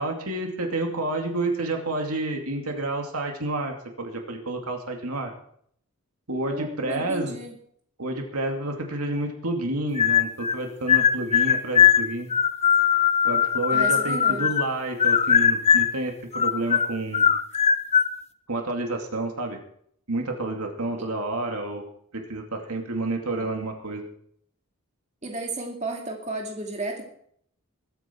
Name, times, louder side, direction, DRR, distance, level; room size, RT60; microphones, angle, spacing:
voice 1, 0.0-5.3 6.3-7.4 8.0-12.3 13.2-17.3 18.5-19.6 20.1-21.8 22.1-24.1, right 2 dB, 85° right, 3 dB, 2.5 m, -29 dB
voice 2, 6.5-7.6 13.7-14.5 25.2-27.0, right 2 dB, 30° right, 1 dB, 2.4 m, -33 dB
sound 1, 10.0-10.6 10.9-14.7 15.0-16.0 16.3-18.1, left 8 dB, 30° left, 0.6 m, -20 dB
21.5 x 9.3 x 4.5 m, 0.64 s
head